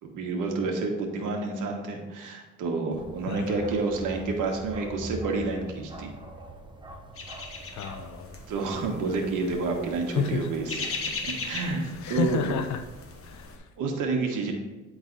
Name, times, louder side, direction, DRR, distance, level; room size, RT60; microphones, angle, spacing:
voice 1, 0.0-6.1 8.5-10.9 11.2-12.4 13.8-14.5, right 3 dB, 75° right, 2 dB, 1.5 m, -29 dB
Bark, 2.9-10.0, right 1 dB, 15° right, 0.9 m, -43 dB
voice 2, 3.3-3.7 7.7-8.4 10.1-10.5 12.0-12.8 13.2-13.6, left 6 dB, 65° left, 10 dB, 0.7 m, -30 dB
sound 1, 7.2-13.6, left 4 dB, 45° left, 1.1 m, -39 dB
9.7 x 3.9 x 4.0 m, 1.2 s
cardioid pair, 95°, 31 cm